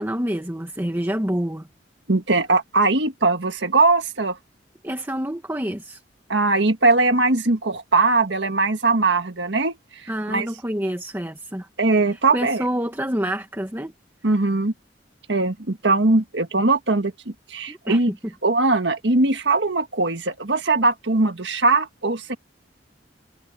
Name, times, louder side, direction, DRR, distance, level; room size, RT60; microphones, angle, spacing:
voice 1, 0.0-1.7 4.8-6.0 10.1-11.7 12.1-13.9 17.7-18.3, equal, 15° right, 1.5 m, -27 dB
voice 2, 2.1-4.4 6.3-9.8 10.0-10.5 11.8-12.6 14.2-14.7 15.3-18.1 18.4-22.4, right 3 dB, 75° right, 1.7 m, -20 dB
head